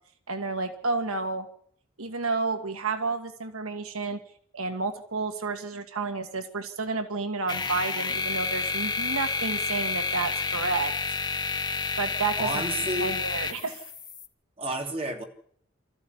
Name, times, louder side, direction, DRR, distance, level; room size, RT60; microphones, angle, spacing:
voice 1, 0.3-1.5 2.0-4.2 4.5-10.9 12.0-12.5 13.0-13.8, right 3 dB, 80° right, 7 dB, 1.7 m, -30 dB
sound 1, 7.5-14.3, left 4 dB, 20° left, 1.6 m, -30 dB
voice 2, 12.4-13.2 14.6-15.2, right 2 dB, 30° right, 2 dB, 3.4 m, -30 dB
25.5 x 14.0 x 9.8 m, 0.66 s
head